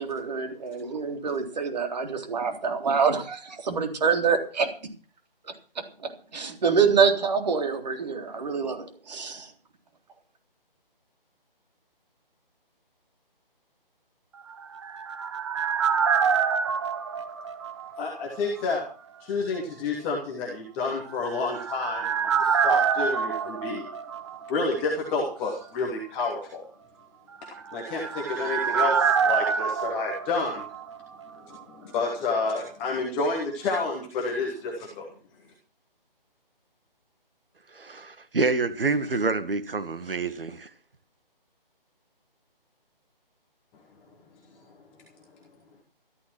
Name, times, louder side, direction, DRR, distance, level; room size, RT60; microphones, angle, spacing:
voice 1, 0.0-4.7 5.4-5.5 6.0-9.5, right 5 dB, 45° right, 5 dB, 3.7 m, -26 dB
sound 1, 14.5-18.3 18.6-18.7 21.1-24.8 25.1-25.2 27.4-31.3 31.5-31.6, right 6 dB, 30° right, 1.0 m, -27 dB
voice 2, 18.0-18.8 19.2-23.9 24.5-26.6 27.4-30.6 31.5-35.1 44.7-44.8, left 3 dB, 5° left, -1 dB, 0.6 m, -29 dB
voice 3, 37.7-40.7, right 3 dB, 70° right, 11 dB, 1.9 m, -27 dB
13.5 x 11.5 x 6.0 m, 0.39 s
figure-of-eight pair, 160°, 29 cm